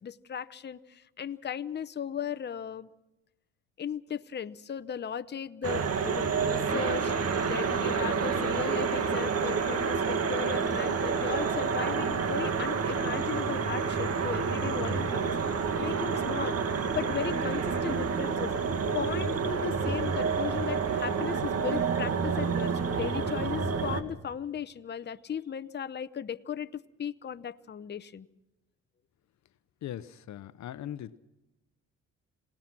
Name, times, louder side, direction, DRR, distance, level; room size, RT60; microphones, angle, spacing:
voice 1, 0.0-2.9 3.8-7.2 7.4-16.6 16.9-18.5 18.9-28.3, left 8 dB, 35° left, 13 dB, 0.8 m, -36 dB
sound 1, 5.6-24.0, right 5 dB, 55° right, 2.0 m, -29 dB
voice 2, 29.8-31.2, left 11 dB, 65° left, 15 dB, 0.8 m, -40 dB
27.0 x 18.5 x 6.0 m, 0.98 s
cardioid pair, 90°, 30 cm